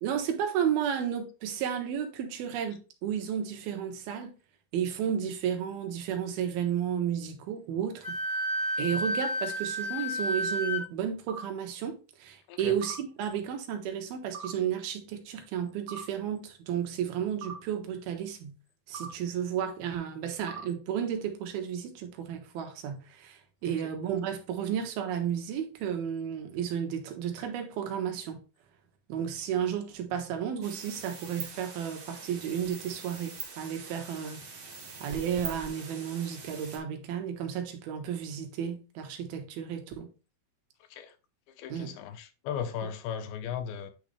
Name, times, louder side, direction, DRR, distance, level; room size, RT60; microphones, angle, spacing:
voice 1, 0.0-4.3 4.7-8.2 8.8-18.5 18.9-28.4 29.1-34.4 35.0-40.1 41.7-42.0, right 8 dB, 75° right, 3.0 m, -33 dB
Wind instrument woodwind instrument, 8.0-10.8, equal, 5° right, 1.2 m, -31 dB
sound 1, 11.3-11.5 12.8-13.0 14.3-14.5 15.9-16.1 17.4-17.6 18.9-19.1 20.5-20.7, right 5 dB, 60° right, 2.0 m, -40 dB
sound 2, 30.6-36.8, right 5 dB, 45° right, 1.4 m, -43 dB
voice 2, 41.6-43.9, left 8 dB, 80° left, 2.7 m, -36 dB
9.3 x 4.1 x 3.2 m
omnidirectional pair, 4.5 m